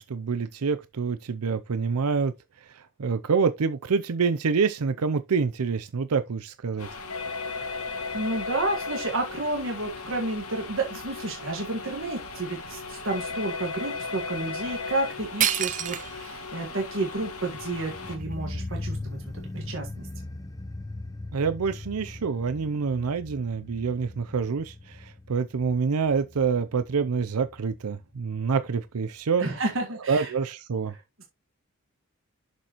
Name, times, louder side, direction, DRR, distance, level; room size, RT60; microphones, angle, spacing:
voice 1, 0.0-2.3 2.7-6.9 21.3-29.4 30.1-30.9, right 5 dB, 90° right, 0.6 m, -27 dB
sound 1, 6.8-18.2, left 4 dB, 80° left, 1.9 m, -36 dB
voice 2, 8.1-19.2 19.5-20.1 29.4-30.3 30.9-31.2, right 2 dB, 60° right, 1.7 m, -31 dB
sound 2, 15.4-16.4 16.9-17.0 17.6-19.0, right 10 dB, 35° right, 0.5 m, -29 dB
sound 3, 17.5-28.5 28.7-28.8, left 2 dB, 15° left, 0.7 m, -39 dB
7.5 x 6.8 x 3.0 m
head